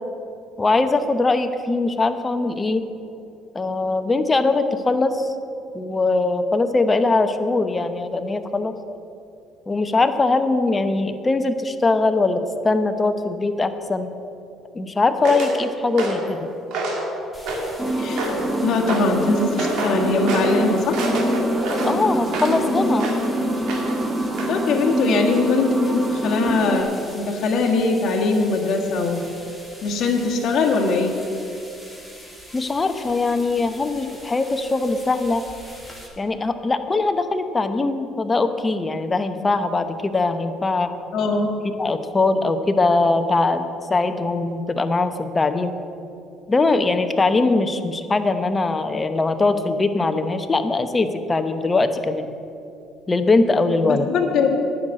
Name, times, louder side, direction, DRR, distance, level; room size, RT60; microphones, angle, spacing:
voice 1, 0.6-2.8 3.5-5.3 5.7-8.7 9.7-14.1 14.7-16.5 21.8-23.1 32.5-35.4 36.2-40.9 41.8-43.6 43.9-45.8 46.5-52.3 53.1-54.1, left 3 dB, 20° left, 9 dB, 0.8 m, -21 dB
sound 1, 15.2-15.6 16.0-16.3 16.7-17.1 17.5-17.8 18.2-18.5 18.9-19.1 19.6-20.0 20.3-20.6 20.9-22.6 23.0-23.3 23.7-24.0 24.4-24.6, right 2 dB, 75° right, 2.1 m, -27 dB
sound 2, 17.3-36.1, equal, 5° right, 2.6 m, -43 dB
sound 3, 17.8-26.8, right 1 dB, 20° right, 1.2 m, -25 dB
voice 2, 18.0-18.3 18.6-21.0 24.5-29.3 29.8-31.1 41.1-41.5 53.8-54.6, left 3 dB, 55° left, -1 dB, 1.6 m, -21 dB
9.8 x 6.4 x 8.9 m, 2.6 s
cardioid pair, 100°, 0 cm